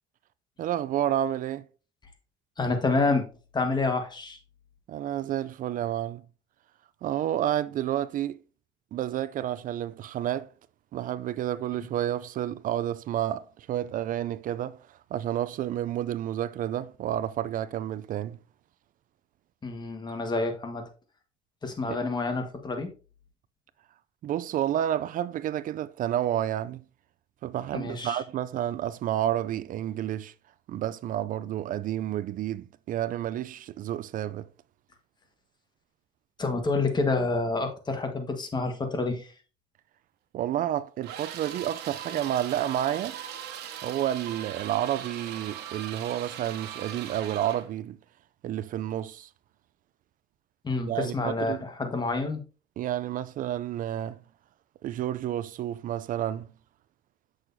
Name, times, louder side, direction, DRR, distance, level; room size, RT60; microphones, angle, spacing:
voice 1, 0.6-1.7 4.9-6.2 7.0-8.4 8.9-10.5 10.9-18.4 21.9-22.0 24.2-26.8 27.4-30.3 30.7-34.5 40.3-43.2 43.8-48.0 48.4-49.3 50.9-51.6 52.8-54.2 54.8-56.5, right 11 dB, 55° right, 0.4 m, -30 dB
voice 2, 2.6-3.3 3.5-4.4 19.6-20.8 21.6-22.9 27.7-28.2 36.4-39.3 50.6-52.4, left 3 dB, 25° left, 1.4 m, -28 dB
sound 1, 41.0-47.7, right 9 dB, 80° right, 1.2 m, -39 dB
7.6 x 6.3 x 2.6 m
cardioid pair, 110°, 17 cm